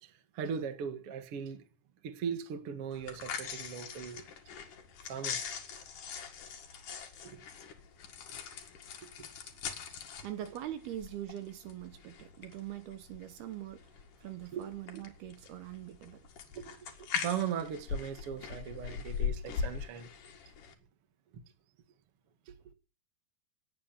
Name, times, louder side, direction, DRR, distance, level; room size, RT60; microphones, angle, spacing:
voice 1, 0.0-1.6 2.0-4.2 5.1-5.5 7.2-7.4 9.0-9.3 14.5-14.6 16.5-16.6 17.0-20.1 21.3-21.4 22.5-22.6, right 7 dB, 55° right, 1.6 m, -39 dB
sound 1, 2.9-20.7, left 7 dB, 55° left, 3.0 m, -41 dB
voice 2, 9.6-16.3 16.6-16.7, right 12 dB, 70° right, 2.8 m, -43 dB
19.0 x 8.6 x 7.1 m
omnidirectional pair, 5.2 m